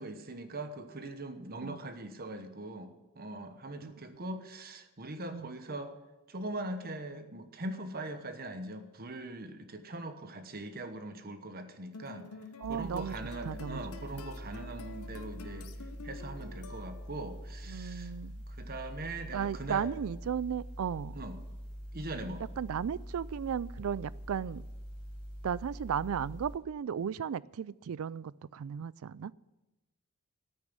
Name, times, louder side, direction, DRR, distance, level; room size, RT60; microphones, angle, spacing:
voice 1, 0.0-6.0 6.3-12.3 12.6-15.7 16.0-18.1 18.5-19.9 21.1-21.4 21.9-22.4, right 2 dB, 45° right, 1.1 m, -41 dB
sound 1, 11.9-17.3, left 3 dB, 85° left, 0.9 m, -49 dB
sound 2, 12.6-26.6, equal, 55° left, 4.8 m, -44 dB
voice 2, 12.6-13.2 13.4-13.8 14.1-14.2 17.7-18.4 19.3-21.2 22.6-24.6 25.4-29.3, right 7 dB, 70° right, 0.3 m, -35 dB
9.4 x 9.0 x 9.4 m
head